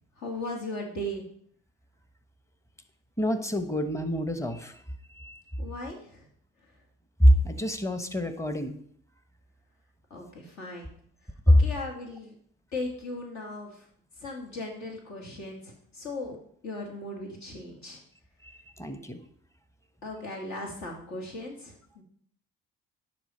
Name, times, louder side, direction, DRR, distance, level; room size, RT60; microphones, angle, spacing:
voice 1, 0.2-1.3 5.6-6.3 10.1-10.9 11.5-12.3 12.7-13.9 14.2-16.4 16.6-18.0 20.0-22.0, left 1 dB, 70° left, -1 dB, 2.0 m, -37 dB
voice 2, 3.2-4.7 5.2-5.4 7.2-8.8 18.8-19.2, equal, 10° left, 9 dB, 1.0 m, -25 dB
10.0 x 3.5 x 4.3 m, 0.63 s
hypercardioid pair, 50°, 30 cm